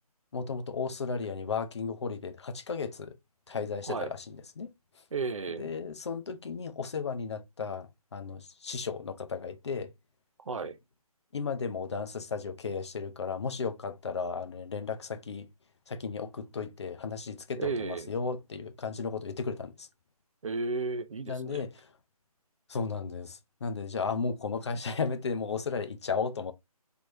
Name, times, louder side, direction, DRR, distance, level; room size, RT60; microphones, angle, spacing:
voice 1, 0.3-3.2 3.5-4.7 5.6-9.9 11.3-15.5 15.9-19.9 21.3-21.9 22.7-26.5, left 5 dB, 45° left, 0.6 m, -34 dB
voice 2, 5.1-5.7 10.5-10.8 17.6-18.1 20.4-21.6, right 4 dB, 55° right, 0.5 m, -33 dB
4.4 x 2.8 x 2.5 m
figure-of-eight pair, 150°, 20 cm